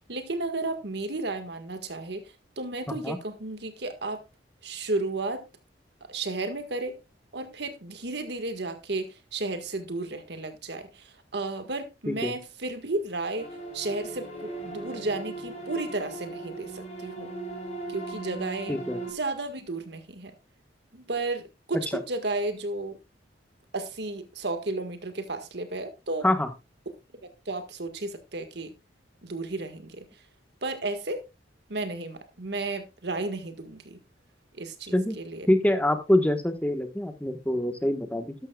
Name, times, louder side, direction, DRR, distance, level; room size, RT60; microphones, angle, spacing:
voice 1, 0.1-4.2 4.6-5.4 6.0-7.0 7.3-17.3 17.9-18.8 19.1-20.3 20.9-23.0 23.7-26.3 27.5-28.7 29.2-30.1 30.6-31.2 31.7-34.0 34.6-35.5, right 2 dB, 60° right, 1.7 m, -33 dB
sound 1, 13.4-19.1, right 2 dB, 40° left, 5.2 m, -38 dB
voice 2, 18.7-19.0 26.2-26.5 34.9-35.2 35.5-38.3, left 1 dB, 10° left, 1.4 m, -25 dB
12.5 x 12.0 x 2.4 m
head